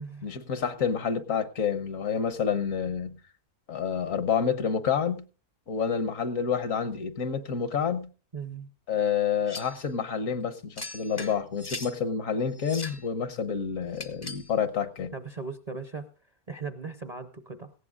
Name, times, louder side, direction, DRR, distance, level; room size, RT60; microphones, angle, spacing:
voice 1, 0.2-3.2 3.7-5.2 5.7-8.1 8.9-15.1, left 7 dB, 65° left, 12 dB, 1.3 m, -28 dB
voice 2, 8.3-8.7 15.1-16.1 16.5-17.7, right 4 dB, 35° right, 8 dB, 0.7 m, -38 dB
sound 1, 9.5-9.8 10.8-12.0 12.6-13.1 13.9-14.5, left 3 dB, 25° left, 0.6 m, -39 dB
18.0 x 15.5 x 2.4 m, 0.34 s
omnidirectional pair, 1.5 m